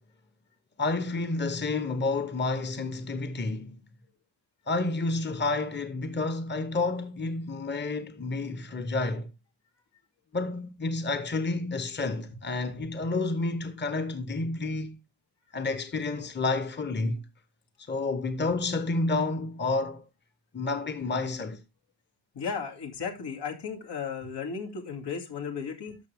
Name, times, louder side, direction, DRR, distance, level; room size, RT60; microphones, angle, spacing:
voice 1, 0.8-3.8 4.7-9.3 10.3-15.0 15.5-17.3 17.9-20.0 20.5-21.6, left 3 dB, 25° left, 0.9 m, -30 dB
voice 2, 22.3-26.0, left 6 dB, 85° left, 2.5 m, -35 dB
13.0 x 6.0 x 3.4 m
wide cardioid pair, 175°, 40 cm